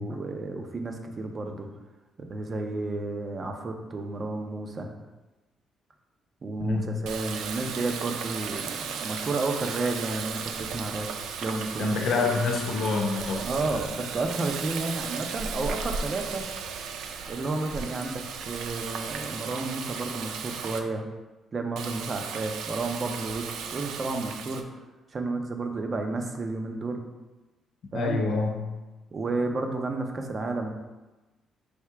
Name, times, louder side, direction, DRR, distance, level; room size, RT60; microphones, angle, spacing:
voice 1, 0.0-1.7 2.2-4.9 6.4-11.1 11.4-12.3 13.4-16.4 17.3-21.1 21.5-24.6 25.1-27.0 27.9-28.2 29.1-30.7, right 3 dB, 40° right, 4 dB, 0.5 m, -31 dB
Water tap faucet, 7.0-20.8 21.8-24.6, right 6 dB, 85° right, 0.3 m, -35 dB
voice 2, 11.8-13.5 27.9-28.6, left 3 dB, 70° left, 2 dB, 0.7 m, -26 dB
3.5 x 2.8 x 4.5 m, 1.1 s
cardioid pair, 100°, 0 cm